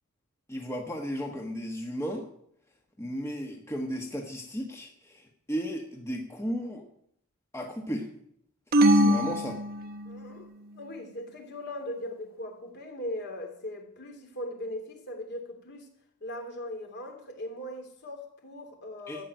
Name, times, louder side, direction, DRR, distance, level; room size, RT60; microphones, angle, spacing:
voice 1, 0.5-2.3 3.0-6.8 7.5-8.1 8.9-9.6 19.1-19.2, equal, 10° left, 2 dB, 1.3 m, -35 dB
sound 1, 8.7-10.4, equal, 45° right, 1.0 m, -23 dB
voice 2, 10.1-10.5 10.7-15.9 16.2-19.2, left 1 dB, 50° left, 3 dB, 3.0 m, -39 dB
13.0 x 7.7 x 9.2 m, 0.70 s
head